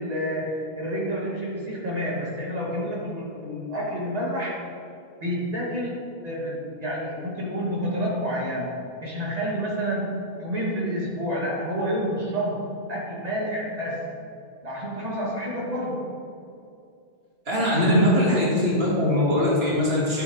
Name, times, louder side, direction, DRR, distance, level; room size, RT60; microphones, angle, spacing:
voice 1, 0.0-4.6 5.2-8.7 9.0-10.1 10.4-12.6 12.9-14.0 14.6-16.1 17.7-18.2, equal, 40° right, -6 dB, 2.5 m, -28 dB
voice 2, 17.5-20.2, left 1 dB, 80° right, -5 dB, 2.1 m, -22 dB
12.0 x 8.7 x 3.3 m, 2.5 s
omnidirectional pair, 1.0 m